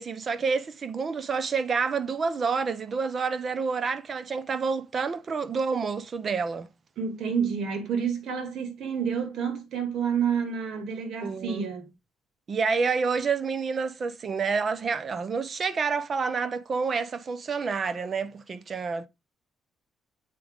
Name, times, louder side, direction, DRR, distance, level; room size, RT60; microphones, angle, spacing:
voice 1, 0.0-6.7 11.2-11.6 12.5-19.1, right 5 dB, 45° right, 0.9 m, -28 dB
voice 2, 7.0-11.9, right 7 dB, 75° right, 2.3 m, -29 dB
7.7 x 4.8 x 3.6 m
cardioid pair, 90°, 0 cm